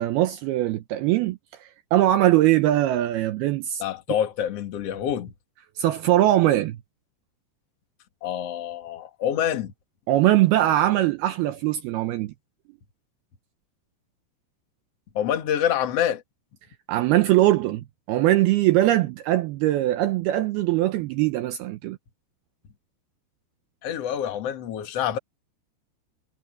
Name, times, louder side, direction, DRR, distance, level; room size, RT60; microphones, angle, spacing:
voice 1, 0.0-3.8 5.8-6.8 10.1-12.3 16.9-22.0, right 14 dB, 80° right, 2.4 m, -21 dB
voice 2, 3.8-5.3 8.2-9.7 15.1-16.2 23.8-25.2, left 10 dB, 55° left, 1.9 m, -26 dB
omnidirectional pair, 5.3 m